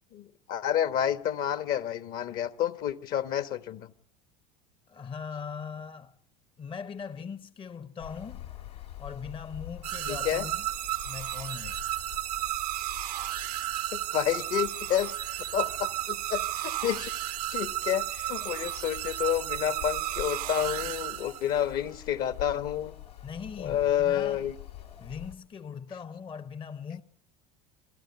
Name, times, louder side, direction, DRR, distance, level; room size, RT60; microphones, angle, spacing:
voice 1, 0.1-3.9 10.1-10.4 13.9-15.1 15.5-17.1 17.5-22.9 23.6-24.5, left 10 dB, 50° left, 1.3 m, -29 dB
voice 2, 4.9-6.2 6.6-8.4 9.0-10.7 11.0-11.8 23.2-24.5 25.0-27.0, left 6 dB, 25° left, 0.9 m, -40 dB
sound 1, 8.0-25.4, left 13 dB, 85° left, 3.0 m, -46 dB
sound 2, 9.8-21.7, right 15 dB, 80° right, 0.9 m, -33 dB
26.5 x 13.0 x 9.6 m
hypercardioid pair, 75°, 20 cm